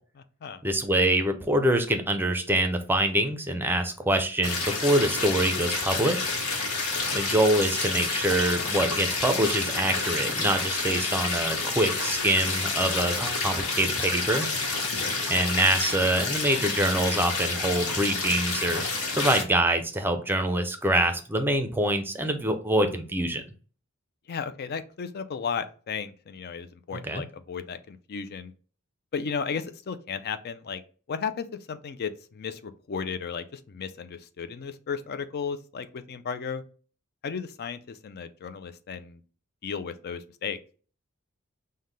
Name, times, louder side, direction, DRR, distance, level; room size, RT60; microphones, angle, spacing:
voice 1, 0.6-6.2 7.1-14.5 15.3-18.8 19.1-23.4 27.1-27.2, right 1 dB, 10° right, 6 dB, 0.5 m, -25 dB
sound 1, 4.4-19.4, left 3 dB, 90° left, 1.0 m, -29 dB
voice 2, 15.0-15.4 24.3-28.5 29.1-30.8 31.1-36.6 37.2-39.2 39.6-40.6, left 6 dB, 50° left, 11 dB, 0.4 m, -34 dB
5.6 x 2.2 x 3.2 m, 0.39 s
head